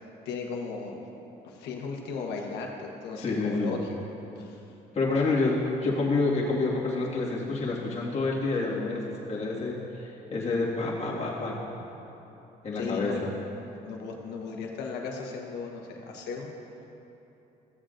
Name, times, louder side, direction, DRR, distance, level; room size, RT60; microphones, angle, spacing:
voice 1, 0.2-1.0 1.4-4.0 4.4-4.6 12.7-13.3 13.8-16.5, left 5 dB, 80° left, 0 dB, 1.2 m, -36 dB
voice 2, 3.2-3.8 4.9-11.6 12.6-13.3, left 3 dB, 40° left, -5 dB, 1.9 m, -28 dB
15.0 x 7.5 x 2.5 m, 3.0 s
cardioid pair, 110°, 17 cm